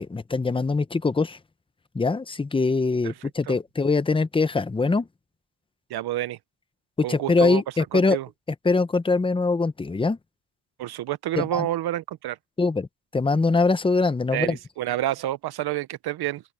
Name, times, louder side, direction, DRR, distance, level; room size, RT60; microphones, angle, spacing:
voice 1, 0.0-1.4 1.9-5.1 7.1-8.2 8.6-10.2 11.4-11.7 12.6-12.9 13.1-14.6, left 3 dB, 15° left, 0.8 m, -23 dB
voice 2, 5.9-6.4 7.0-7.6 7.9-8.3 10.8-12.4 14.3-16.4, right 13 dB, 65° right, 0.8 m, -28 dB
open air
cardioid pair, 110°, 41 cm